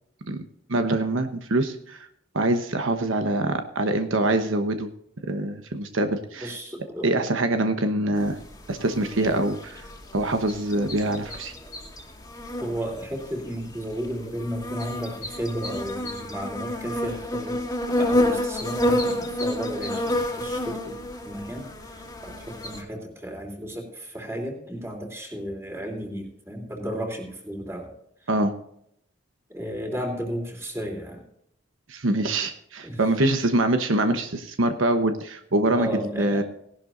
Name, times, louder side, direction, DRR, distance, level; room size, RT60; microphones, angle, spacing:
voice 1, 0.7-2.1 2.3-4.9 5.3-6.5 7.0-8.4 8.7-9.9 10.1-11.5 28.3-28.5 31.9-35.9 36.2-36.4, right 1 dB, 80° right, 7 dB, 1.1 m, -24 dB
voice 2, 6.4-7.4 8.0-8.2 9.1-9.3 11.6-11.7 12.6-17.7 18.0-27.9 28.2-28.3 29.5-31.2 32.8-33.0 33.4-33.5 35.7-36.4, equal, 15° right, 2 dB, 3.2 m, -34 dB
sound 1, 8.2-22.8, left 1 dB, 20° left, 2.2 m, -29 dB
18.0 x 11.5 x 2.6 m, 0.72 s
head